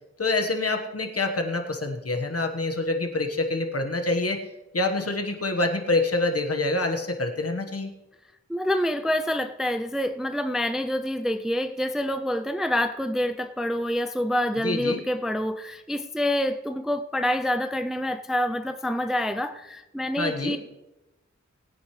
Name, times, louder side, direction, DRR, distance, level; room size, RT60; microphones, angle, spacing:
voice 1, 0.2-4.4 4.7-7.9 14.6-15.0 20.2-20.6, left 2 dB, 55° left, 1.4 m, -26 dB
voice 2, 8.5-20.6, left 1 dB, ahead, 0.5 m, -27 dB
20.5 x 9.3 x 3.2 m
wide cardioid pair, 85°, 29 cm